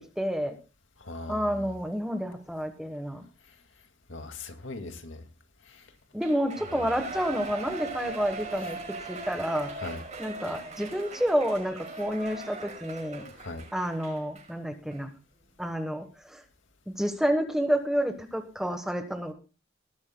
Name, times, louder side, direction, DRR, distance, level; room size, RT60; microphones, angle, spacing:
voice 1, 0.2-0.5 1.3-3.2 6.1-9.7 10.2-13.2 13.7-15.1 15.6-16.4 16.9-19.3, equal, 5° right, 6 dB, 1.1 m, -29 dB
voice 2, 1.0-1.7 4.1-5.2 6.7-6.9 9.8-10.0 13.4-13.6, left 2 dB, 90° left, 6 dB, 2.1 m, -39 dB
Shout / Cheering, 6.2-14.5 14.9-15.0, right 3 dB, 40° right, 5.9 m, -40 dB
19.5 x 11.5 x 2.2 m, 0.33 s
head